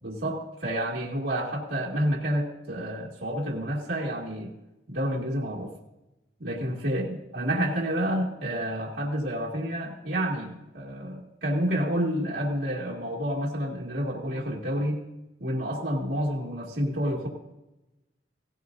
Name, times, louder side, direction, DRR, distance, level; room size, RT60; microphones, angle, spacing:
voice 1, 0.0-4.5 4.9-5.7 6.4-15.0 15.4-17.3, equal, 80° right, -4 dB, 2.1 m, -29 dB
17.5 x 16.0 x 2.6 m, 0.96 s
head